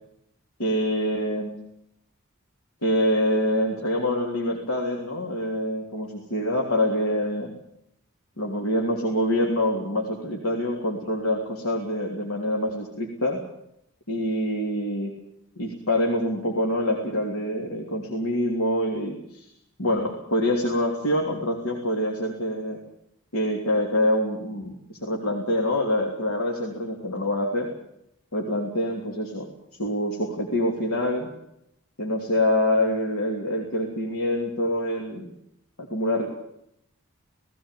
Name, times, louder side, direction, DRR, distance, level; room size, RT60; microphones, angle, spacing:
voice 1, 0.6-1.5 2.8-7.5 8.4-13.4 14.1-15.2 15.6-19.5 19.8-22.8 23.3-27.7 28.3-29.5 29.8-31.3 32.0-35.3 35.8-36.3, left 1 dB, 85° left, 1 dB, 3.4 m, -25 dB
18.5 x 17.5 x 9.4 m, 0.78 s
head